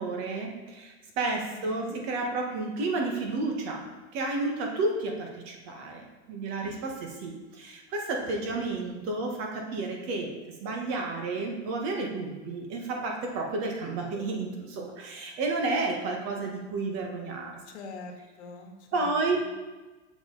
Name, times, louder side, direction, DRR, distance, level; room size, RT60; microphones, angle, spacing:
voice 1, 0.0-10.3 10.6-17.6 18.9-19.4, right 3 dB, 40° right, 1 dB, 1.5 m, -31 dB
voice 2, 1.5-2.0 17.7-19.1 19.3-19.5, left 3 dB, 70° left, 2 dB, 1.6 m, -44 dB
7.4 x 6.4 x 4.0 m, 1.2 s
supercardioid pair, 155°, 36 cm